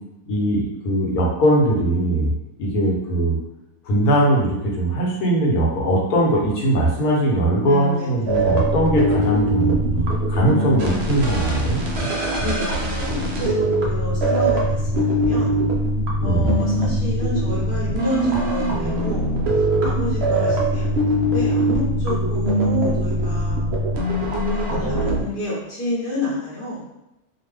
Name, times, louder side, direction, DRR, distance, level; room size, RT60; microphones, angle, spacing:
voice 1, 0.3-2.3 2.6-3.4 3.8-12.1 12.4-12.5 16.2-16.6, right 1 dB, 75° left, -3 dB, 1.2 m, -20 dB
voice 2, 7.6-8.7 9.9-10.4 10.8-11.0 11.4-11.8 12.4-15.6 16.2-19.3 19.8-21.1 21.3-23.6 24.3-26.9, left 1 dB, 45° left, -7 dB, 0.8 m, -29 dB
sound 1, 8.3-25.2, right 1 dB, 65° right, 0.6 m, -22 dB
2.8 x 2.1 x 3.3 m, 0.91 s
omnidirectional pair, 1.7 m